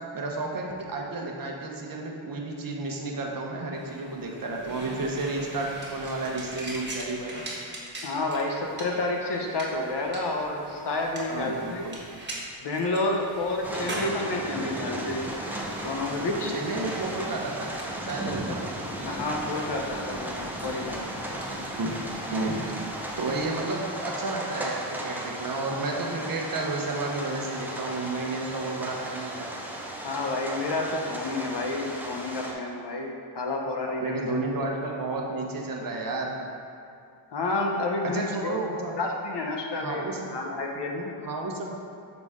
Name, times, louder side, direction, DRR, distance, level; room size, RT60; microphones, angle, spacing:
voice 1, 0.1-7.4 11.3-12.0 16.5-17.7 18.0-18.7 21.7-21.9 22.3-22.8 23.2-29.5 34.0-36.4 38.0-38.9 39.8-40.3 41.2-41.7, right 2 dB, 45° right, 0 dB, 1.0 m, -31 dB
sound 1, 3.7-23.5, right 1 dB, 20° right, 1.4 m, -42 dB
voice 2, 8.0-11.9 12.6-15.3 15.8-16.5 18.3-18.4 19.0-21.0 30.0-34.2 37.3-38.7 38.9-40.0 40.3-41.2, left 2 dB, 55° left, 1 dB, 0.9 m, -30 dB
sound 2, 13.6-32.5, right 1 dB, 5° right, 0.8 m, -35 dB
6.8 x 4.0 x 3.6 m, 2.4 s
cardioid pair, 65°, 49 cm